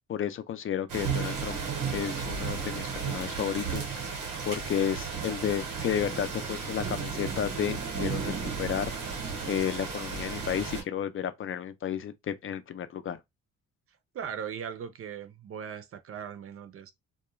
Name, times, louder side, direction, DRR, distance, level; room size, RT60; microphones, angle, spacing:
voice 1, 0.1-1.6 1.9-4.2 4.4-8.9 9.5-13.2, left 9 dB, 45° left, 0.4 m, -32 dB
sound 1, 0.9-10.8, right 5 dB, 90° right, 1.0 m, -34 dB
voice 2, 14.1-16.9, right 8 dB, 50° right, 0.5 m, -39 dB
2.2 x 2.2 x 3.0 m
cardioid pair, 90°, 30 cm